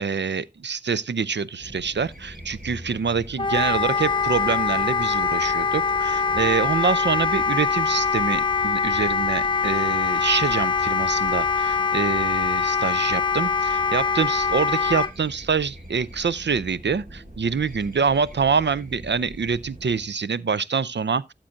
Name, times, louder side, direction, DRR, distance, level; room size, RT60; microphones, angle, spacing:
voice 1, 0.0-21.3, right 5 dB, 85° right, 0.4 m, -25 dB
sound 1, 1.6-20.1, equal, 50° right, 2.7 m, -43 dB
Wind instrument woodwind instrument, 3.4-15.1, left 5 dB, 25° left, 0.5 m, -23 dB
13.0 x 7.5 x 2.5 m
wide cardioid pair, 50°, 18 cm